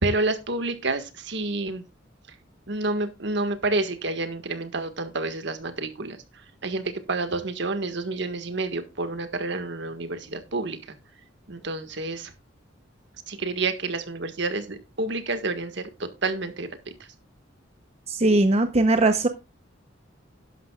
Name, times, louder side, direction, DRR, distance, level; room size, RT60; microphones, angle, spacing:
voice 1, 0.0-1.8 2.7-6.2 6.6-10.8 11.5-12.3 13.3-16.7, right 2 dB, 65° right, 8 dB, 1.6 m, -29 dB
voice 2, 18.1-19.3, right 2 dB, 35° right, 8 dB, 0.8 m, -20 dB
12.0 x 11.0 x 2.4 m, 0.27 s
head